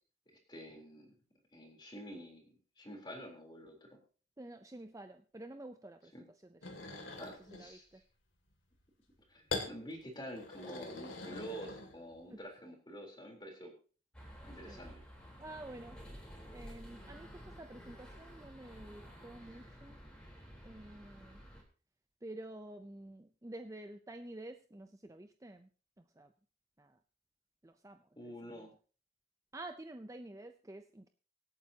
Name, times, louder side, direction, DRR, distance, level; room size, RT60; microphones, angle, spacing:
voice 1, 0.5-1.2 1.5-2.4 2.8-4.0 6.1-6.3 7.2-7.9 9.3-13.7 14.4-15.0 28.2-28.7, equal, 25° left, 1 dB, 3.6 m, -48 dB
voice 2, 4.4-8.0 12.3-12.4 14.6-14.8 15.4-16.0 16.5-20.0 20.6-21.4 22.2-25.7 26.0-26.3 26.8-27.0 27.6-28.5 29.5-31.1, right 1 dB, 15° right, 7 dB, 0.5 m, -50 dB
sound 1, 6.6-7.7 9.5-9.7 10.3-12.2, left 3 dB, 85° left, 2.6 m, -42 dB
sound 2, 14.1-21.6, equal, 5° left, 3.7 m, -52 dB
25.0 x 8.7 x 2.8 m, 0.39 s
head